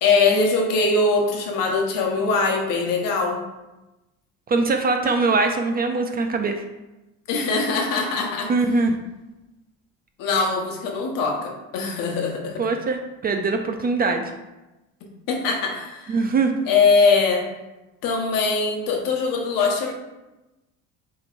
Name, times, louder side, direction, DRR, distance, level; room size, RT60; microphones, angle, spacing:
voice 1, 0.0-3.4 7.3-8.5 10.2-12.6 15.3-16.2 16.7-17.5 18.0-19.9, left 4 dB, 70° left, 1 dB, 1.1 m, -22 dB
voice 2, 4.5-6.6 8.5-9.0 12.6-14.3 16.1-16.5, right 3 dB, 30° right, 5 dB, 0.4 m, -22 dB
6.8 x 3.1 x 2.5 m, 1.0 s
cardioid pair, 105°, 34 cm